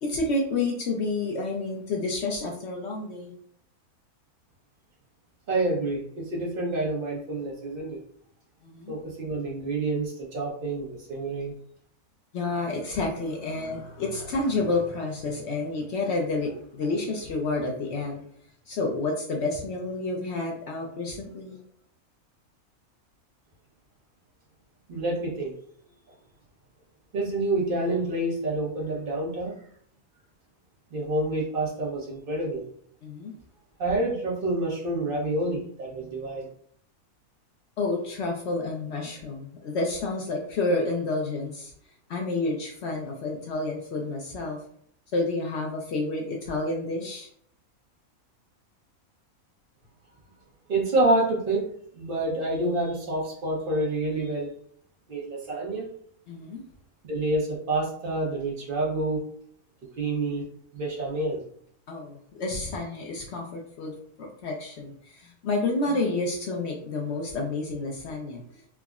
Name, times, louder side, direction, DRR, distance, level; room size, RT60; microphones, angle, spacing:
voice 1, 0.0-3.4 8.6-8.9 12.3-18.2 18.7-21.6 33.0-33.3 37.8-41.7 42.1-44.6 45.1-47.3 56.3-56.6 61.9-68.4, left 2 dB, 65° left, 0 dB, 0.7 m, -29 dB
voice 2, 5.5-8.0 8.9-11.5 24.9-25.5 27.1-29.6 30.9-32.6 33.8-36.5 50.7-51.7 51.9-54.5 55.1-55.9 57.1-59.3 60.0-60.4 60.7-61.4, right 2 dB, 45° right, -3 dB, 0.9 m, -28 dB
3.5 x 2.0 x 2.3 m, 0.63 s
omnidirectional pair, 1.6 m